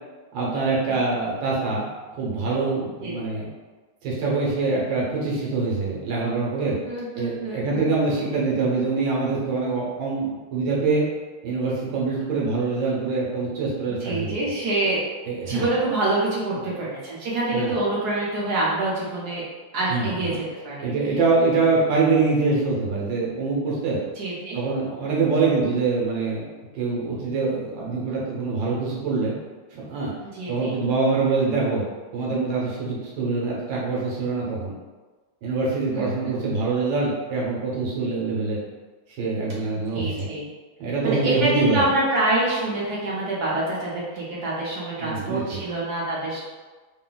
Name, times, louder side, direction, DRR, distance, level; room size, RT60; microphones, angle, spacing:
voice 1, 0.3-1.9 2.2-3.5 4.0-6.8 7.1-11.0 11.4-14.4 15.3-15.7 17.5-17.7 19.9-20.3 20.8-24.0 24.5-26.4 26.7-29.3 29.7-30.1 30.5-31.9 32.1-34.7 35.4-38.6 39.2-40.3 40.8-41.9 45.0-45.6, right 3 dB, 90° right, -4 dB, 1.7 m, -24 dB
voice 2, 6.8-7.9 14.0-15.0 15.4-19.4 19.7-20.9 24.2-24.6 30.3-30.7 35.9-36.3 39.9-40.5 41.0-46.4, right 2 dB, 60° right, -6 dB, 1.5 m, -26 dB
3.8 x 2.2 x 3.9 m, 1.3 s
omnidirectional pair, 2.0 m